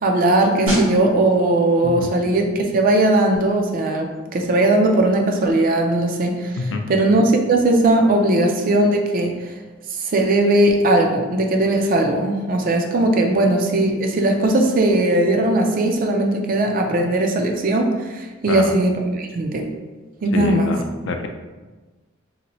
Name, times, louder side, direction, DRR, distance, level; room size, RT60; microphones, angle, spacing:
voice 1, 0.0-9.3 10.1-19.7 20.2-20.7, right 1 dB, 45° right, 3 dB, 0.4 m, -18 dB
sound 1, 0.7-11.2 11.4-11.7, right 1 dB, 80° right, 1.1 m, -32 dB
voice 2, 20.3-21.3, left 3 dB, 65° left, 5 dB, 0.4 m, -25 dB
3.1 x 2.8 x 2.9 m, 1.2 s
head